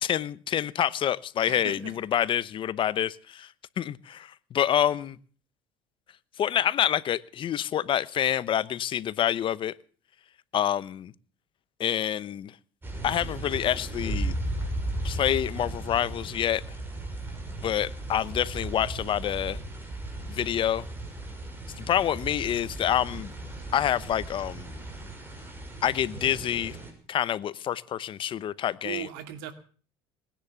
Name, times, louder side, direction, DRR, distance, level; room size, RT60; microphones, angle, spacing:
voice 1, 0.0-5.2 6.4-9.7 10.5-11.1 11.8-12.5 13.0-14.4 15.0-16.6 17.6-19.6 20.3-20.9 21.8-23.3 23.7-24.8 25.8-26.8 27.1-29.1, left 10 dB, 45° left, 18 dB, 0.9 m, -27 dB
voice 2, 1.5-1.9 28.8-29.5, right 11 dB, 90° right, 9 dB, 2.3 m, -37 dB
sound 1, 12.8-26.9, right 1 dB, 15° right, 6.0 m, -36 dB
20.0 x 10.5 x 7.0 m, 0.42 s
supercardioid pair, 105°, 12 cm